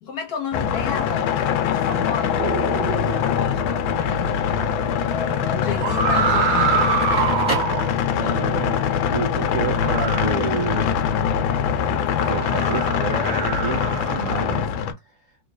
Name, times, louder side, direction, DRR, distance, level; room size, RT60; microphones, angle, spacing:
voice 1, 0.0-4.4 5.1-6.8, left 6 dB, 60° left, 1.2 m, -31 dB
sound 1, 0.5-14.9, left 8 dB, 80° left, 1.4 m, -23 dB
sound 2, 2.4-3.4 5.7-7.9 9.6-11.0 12.1-14.4, right 6 dB, 90° right, 1.5 m, -25 dB
Crackle, 6.8-8.5, right 1 dB, 5° right, 1.4 m, -31 dB
voice 2, 8.1-10.9 11.9-15.2, right 6 dB, 65° right, 0.8 m, -30 dB
3.7 x 3.0 x 2.3 m
omnidirectional pair, 2.2 m